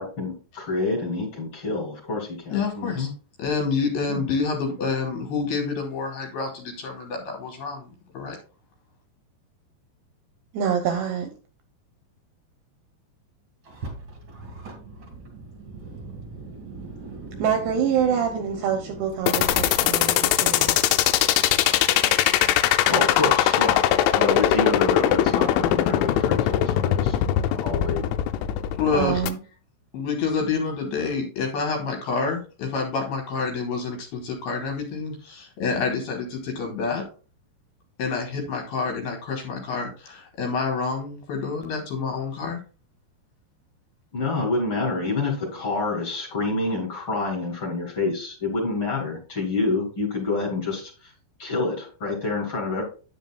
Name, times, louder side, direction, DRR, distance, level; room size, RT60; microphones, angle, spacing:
voice 1, 0.0-3.1 4.1-4.2 22.7-23.8 24.2-27.2 27.4-28.0 44.1-51.1 51.4-52.8, left 3 dB, 35° left, 0 dB, 2.5 m, -28 dB
voice 2, 2.5-3.1 3.4-7.9 8.1-8.4 28.8-29.2 29.9-37.0 38.0-42.6, left 4 dB, 65° left, 2 dB, 2.9 m, -28 dB
voice 3, 10.5-11.3 17.4-20.8 28.9-29.4, right 8 dB, 75° right, 5 dB, 2.6 m, -25 dB
Car, 13.6-20.2, right 2 dB, 45° right, 1.7 m, -39 dB
sound 1, 19.3-29.3, left 11 dB, 85° left, 3.1 m, -21 dB
9.3 x 9.0 x 2.3 m, 0.35 s
omnidirectional pair, 5.5 m